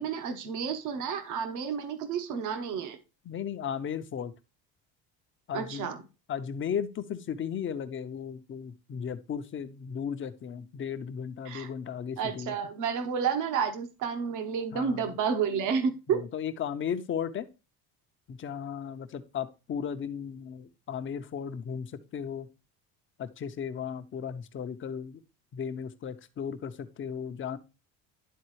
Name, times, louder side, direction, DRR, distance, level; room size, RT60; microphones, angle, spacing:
voice 1, 0.0-3.0 5.5-6.0 11.5-11.7 12.2-16.2, right 6 dB, 65° right, 1.1 m, -30 dB
voice 2, 3.2-4.3 5.5-5.9 6.3-12.6 14.7-15.2 16.1-17.5 18.3-22.5 23.2-25.2 25.5-27.6, left 7 dB, 35° left, 0.8 m, -35 dB
11.0 x 3.9 x 3.1 m
supercardioid pair, 100°, 33 cm